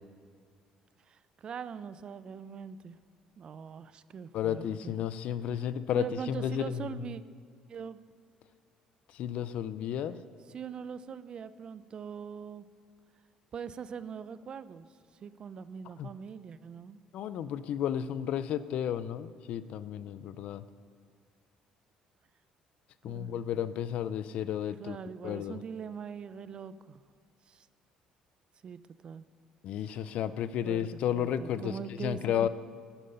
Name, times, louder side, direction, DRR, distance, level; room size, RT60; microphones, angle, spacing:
voice 1, 1.1-3.0 3.4-4.9 5.9-7.2 7.7-8.0 10.5-12.7 13.5-14.9 15.2-17.0 23.0-23.6 24.8-27.0 27.5-27.7 28.6-29.3 30.6-30.8 31.1-32.5, right 7 dB, 45° right, 15 dB, 0.5 m, -42 dB
voice 2, 4.3-7.0 9.1-10.2 16.0-16.1 17.1-20.6 23.0-25.0 25.2-25.6 29.6-32.5, left 9 dB, 65° left, 15 dB, 0.5 m, -33 dB
11.0 x 10.0 x 5.5 m, 2.2 s
supercardioid pair, 80°, 2 cm